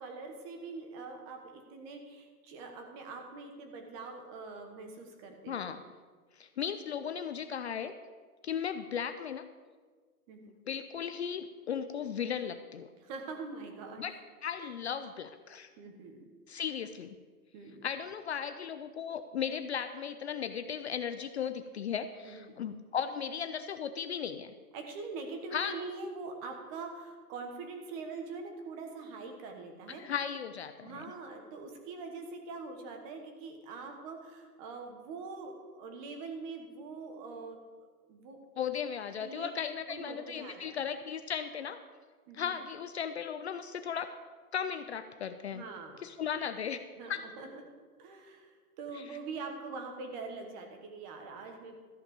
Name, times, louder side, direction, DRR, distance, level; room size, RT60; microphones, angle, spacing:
voice 1, 0.0-5.7 10.3-10.5 13.0-14.0 15.8-16.3 17.5-17.9 22.2-22.6 24.7-30.0 30.8-38.4 39.2-39.5 39.9-40.8 42.3-42.6 45.5-46.1 47.0-47.6 48.0-51.8, right 4 dB, 25° right, 4 dB, 1.3 m, -43 dB
voice 2, 5.5-5.8 6.4-7.9 8.4-9.4 10.7-12.9 14.0-14.1 14.4-15.7 16.5-17.2 17.8-24.5 25.5-25.7 30.0-31.0 38.6-41.8 42.3-44.1 44.5-45.6 46.0-46.8 47.1-47.2 48.9-49.0, left 7 dB, 45° left, 10 dB, 0.5 m, -36 dB
13.5 x 5.8 x 7.0 m, 1.5 s
hypercardioid pair, 155°, 46 cm